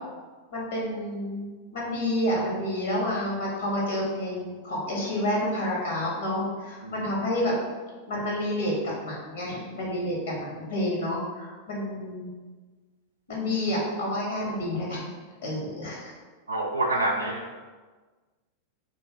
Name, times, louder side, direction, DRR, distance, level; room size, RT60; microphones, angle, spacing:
voice 1, 0.5-7.6 8.1-8.7 9.0-12.3 13.3-15.0 15.4-16.1, left 1 dB, 60° left, -4 dB, 1.3 m, -29 dB
voice 2, 16.5-17.6, right 1 dB, 80° right, 0 dB, 0.3 m, -27 dB
3.3 x 2.6 x 4.5 m, 1.4 s
figure-of-eight pair, 90°, 0 cm